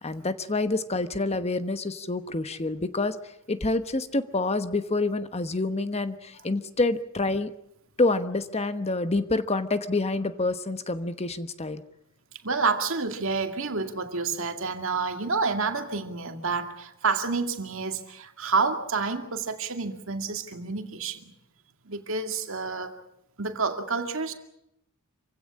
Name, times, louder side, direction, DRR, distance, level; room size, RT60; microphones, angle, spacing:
voice 1, 0.0-3.2 3.5-7.5 8.0-11.8, left 2 dB, 30° left, 11 dB, 1.1 m, -27 dB
voice 2, 12.4-21.3 21.9-23.0 23.4-24.3, right 4 dB, 65° right, 6 dB, 2.3 m, -29 dB
26.5 x 16.5 x 8.6 m, 0.81 s
head